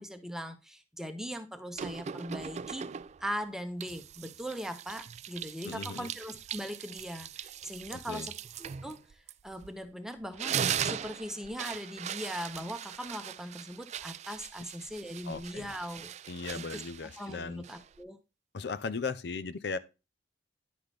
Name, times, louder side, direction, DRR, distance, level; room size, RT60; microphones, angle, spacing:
voice 1, 0.0-2.9 3.2-8.3 8.6-10.6 10.8-16.1 16.5-16.8 17.2-18.2, equal, 5° right, 0.9 m, -40 dB
sound 1, 1.8-3.3 3.8-9.9 10.2-18.0, right 8 dB, 40° right, 0.3 m, -39 dB
voice 2, 5.6-6.1 7.9-8.3 15.2-15.7 16.3-17.6 18.5-19.8, left 4 dB, 70° left, 0.5 m, -37 dB
10.5 x 5.8 x 3.3 m
head